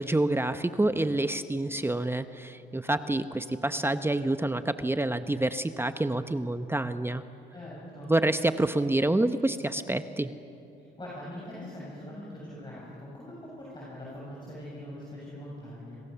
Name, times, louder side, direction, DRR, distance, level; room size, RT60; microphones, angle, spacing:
voice 1, 0.0-7.2 8.1-10.3, right 2 dB, 10° right, 10 dB, 0.8 m, -27 dB
voice 2, 7.5-8.1 11.0-16.0, left 1 dB, 25° left, -6 dB, 7.7 m, -42 dB
27.5 x 23.0 x 6.9 m, 2.8 s
cardioid pair, 90°, 20 cm